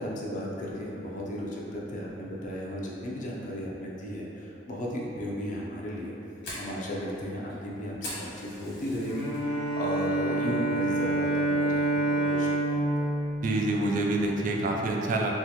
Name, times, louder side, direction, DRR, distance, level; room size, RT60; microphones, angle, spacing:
voice 1, 0.0-6.1 6.6-13.1, equal, 45° left, -4 dB, 0.5 m, -35 dB
Fire, 6.0-9.4 9.8-10.2 10.6-10.7 11.2-11.6, left 1 dB, 60° left, 1.1 m, -41 dB
Bowed string instrument, 9.1-14.3, right 1 dB, 10° left, 1.1 m, -28 dB
voice 2, 13.4-15.3, right 2 dB, 50° right, 0 dB, 0.3 m, -27 dB
3.5 x 2.4 x 2.8 m, 2.9 s
head